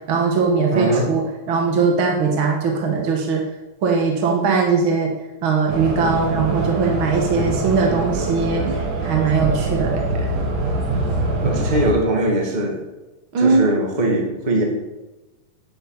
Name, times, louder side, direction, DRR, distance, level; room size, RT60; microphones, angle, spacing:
voice 1, 0.1-1.2 1.5-3.4 3.8-5.1 5.4-8.7 9.0-10.3 13.3-13.6, right 5 dB, 50° right, 1 dB, 1.9 m, -20 dB
voice 2, 0.7-1.1 11.4-12.8 13.4-14.6, right 1 dB, 15° right, 0 dB, 1.8 m, -21 dB
sound 1, 5.7-11.9, right 2 dB, 75° right, 3.7 m, -24 dB
9.3 x 7.8 x 8.8 m, 1.1 s
omnidirectional pair, 3.7 m